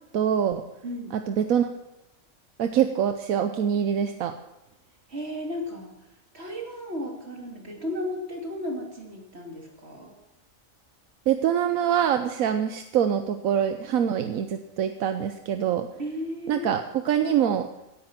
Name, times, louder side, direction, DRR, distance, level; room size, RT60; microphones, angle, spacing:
voice 1, 0.1-0.6 1.1-1.7 2.6-4.3 11.3-15.9 16.5-17.7, right 9 dB, 80° right, 8 dB, 1.2 m, -24 dB
voice 2, 0.8-1.1 5.1-5.9 6.3-10.1 16.0-16.7, left 1 dB, 50° right, 1 dB, 3.0 m, -34 dB
16.5 x 10.5 x 5.8 m, 0.91 s
omnidirectional pair, 1.4 m